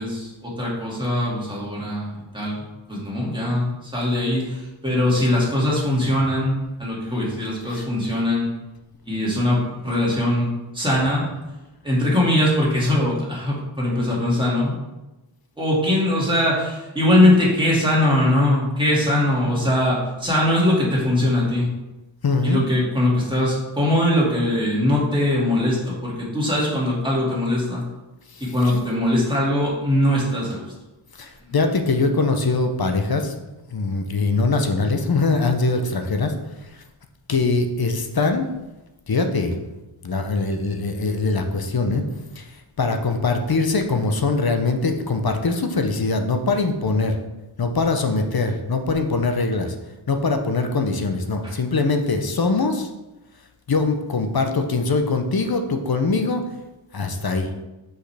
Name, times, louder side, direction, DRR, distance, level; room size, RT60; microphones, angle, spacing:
voice 1, 0.0-8.5 9.1-11.3 11.8-14.8 15.6-21.7 22.4-27.8 28.5-30.7 31.4-31.5, left 1 dB, 10° right, -6 dB, 2.3 m, -21 dB
voice 2, 22.2-22.6 28.3-28.4 31.2-33.3 33.7-36.3 37.3-38.5 39.1-39.6 40.0-42.0 42.4-42.5 42.8-47.2 47.6-49.7 50.1-52.9 53.7-56.4 56.9-57.5, left 3 dB, 50° left, 6 dB, 0.8 m, -22 dB
6.2 x 5.3 x 3.4 m, 1.0 s
wide cardioid pair, 75°, 47 cm